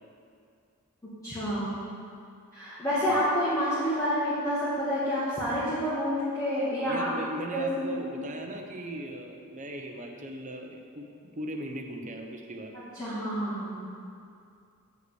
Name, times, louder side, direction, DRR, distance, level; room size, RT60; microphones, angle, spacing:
voice 1, 1.2-1.8 2.5-7.1 7.5-8.0 12.9-13.9, equal, 15° left, -13 dB, 2.0 m, -28 dB
voice 2, 6.8-11.1 11.4-12.7, right 1 dB, 35° right, 3 dB, 0.9 m, -38 dB
7.9 x 5.7 x 7.9 m, 2.4 s
head